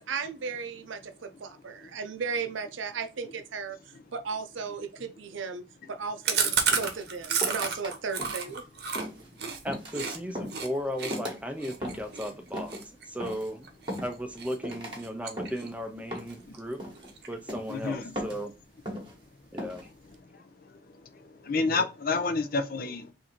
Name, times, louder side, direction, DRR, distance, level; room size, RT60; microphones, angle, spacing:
voice 1, 0.0-3.8 4.1-5.6 5.9-8.6, right 5 dB, 85° right, 0.6 m, -35 dB
Chewing mastication, 6.2-10.2 10.5-10.7 11.0-14.0 14.4-14.7 15.0-15.9 16.2-16.3 16.5-16.6 16.9-17.5, right 6 dB, 55° right, 0.9 m, -31 dB
sound 1, 6.7-7.9 8.2-8.6 8.9-9.3 9.7-10.0 10.3-10.6 11.1-11.4 11.8-12.2 12.5-12.8 13.2-13.5 13.9-14.4 14.6-15.0 15.4-15.7 16.1-16.5 16.8-17.1 17.5-17.8 18.2-18.5 18.9-19.2 19.6-19.9, equal, 25° right, 1.1 m, -37 dB
voice 2, 9.6-13.7 14.0-16.8 17.3-18.5 19.5-19.9, equal, 5° right, 0.6 m, -36 dB
voice 3, 17.7-18.1 21.1-23.1, left 3 dB, 50° left, 0.5 m, -29 dB
3.7 x 2.7 x 4.3 m
head